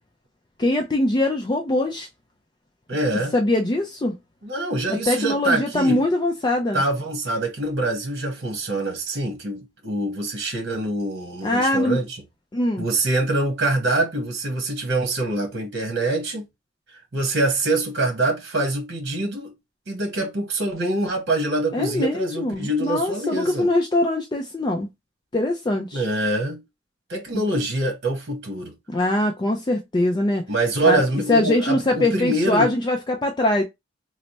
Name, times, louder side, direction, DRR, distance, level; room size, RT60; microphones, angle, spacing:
voice 1, 0.6-2.1 3.3-4.2 4.9-6.8 11.4-12.0 12.5-12.8 21.7-24.9 25.3-26.0 27.3-27.4 28.9-30.4 30.8-31.0 31.3-33.6, left 1 dB, 20° left, 0.4 m, -22 dB
voice 2, 2.9-3.3 4.4-6.1 6.7-12.2 12.8-16.4 17.1-19.5 19.9-23.7 25.9-26.6 27.1-28.7 30.5-32.7, right 2 dB, 60° right, 1.0 m, -24 dB
3.2 x 2.0 x 4.0 m
head